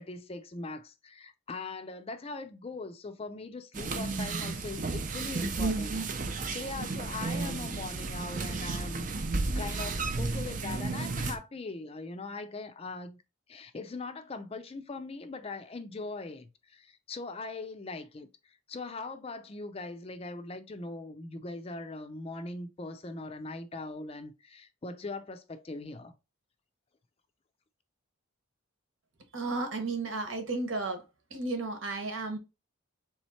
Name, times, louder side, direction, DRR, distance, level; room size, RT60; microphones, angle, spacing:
voice 1, 0.0-9.1 9.5-13.2 13.5-26.1, left 3 dB, 30° left, 0.4 m, -41 dB
sound 1, 3.7-11.4, right 3 dB, 40° right, 0.5 m, -33 dB
voice 2, 29.3-31.0 31.3-32.4, right 3 dB, 70° right, 1.1 m, -33 dB
3.5 x 3.1 x 4.2 m
head